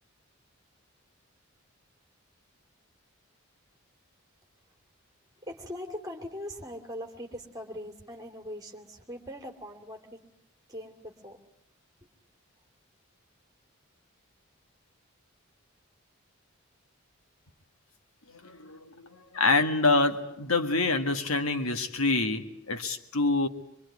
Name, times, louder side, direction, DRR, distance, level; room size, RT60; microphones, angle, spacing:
voice 1, 5.4-10.2 10.7-11.4 12.0-12.1, equal, 15° right, 2.8 m, -41 dB
voice 2, 18.3-23.5, left 3 dB, 75° left, 1.8 m, -26 dB
24.5 x 23.5 x 9.6 m
head